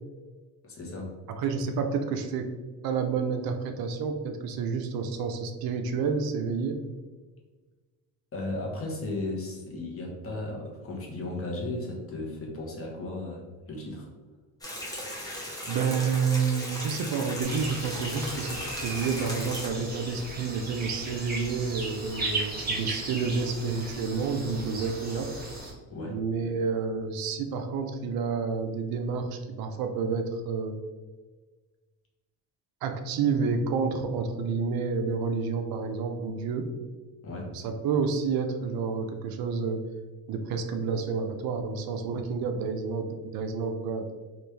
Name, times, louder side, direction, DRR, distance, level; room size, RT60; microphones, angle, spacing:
voice 1, 0.6-1.1 8.3-14.1 25.9-26.2 37.2-37.5, left 2 dB, 35° left, -1 dB, 0.9 m, -35 dB
voice 2, 1.4-2.5 2.8-6.8 15.7-25.3 26.1-30.8 32.8-36.7 37.5-39.8 40.3-44.1, right 5 dB, 65° right, 6 dB, 0.5 m, -29 dB
sound 1, 14.6-19.7, left 1 dB, 10° left, 0.8 m, -37 dB
sound 2, 17.4-25.7, right 2 dB, 25° right, 1.0 m, -36 dB
3.1 x 2.5 x 3.3 m, 1.3 s
cardioid pair, 125°, 39 cm